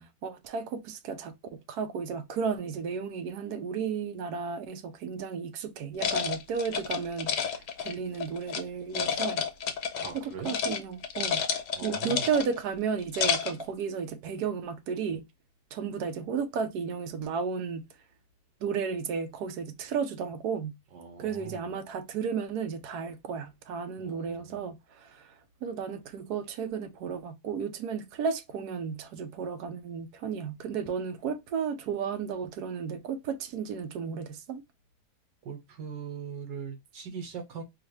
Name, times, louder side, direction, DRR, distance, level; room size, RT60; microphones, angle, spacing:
voice 1, 0.2-9.5 10.1-11.5 11.8-15.3 15.7-17.9 18.6-20.7 21.2-25.3 25.6-34.6, right 6 dB, 70° right, 1.1 m, -33 dB
sound 1, 6.0-8.6 8.9-10.2 10.4-10.8 11.0-12.6 13.0-13.6, left 7 dB, 85° left, 1.4 m, -30 dB
voice 2, 10.0-10.5 11.7-12.3 20.9-21.7 24.0-24.7 35.4-37.6, right 6 dB, 90° right, 1.8 m, -41 dB
4.6 x 2.5 x 3.1 m
omnidirectional pair, 1.8 m